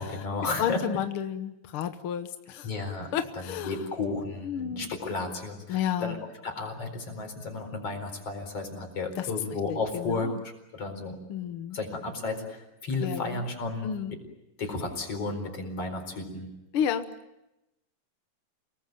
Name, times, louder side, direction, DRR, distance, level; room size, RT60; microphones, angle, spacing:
voice 1, 0.0-0.8 2.6-3.1 3.4-10.3 10.7-11.2 11.7-13.9 14.6-16.6, left 3 dB, 40° left, 5 dB, 5.3 m, -33 dB
voice 2, 0.6-2.7 3.1-3.8 4.4-4.9 5.7-6.2 9.2-9.3 9.7-10.4 11.3-11.8 13.0-13.4 13.8-14.2 16.7-17.1, left 9 dB, 75° left, 9 dB, 1.2 m, -31 dB
29.5 x 19.5 x 9.2 m, 0.95 s
omnidirectional pair, 4.1 m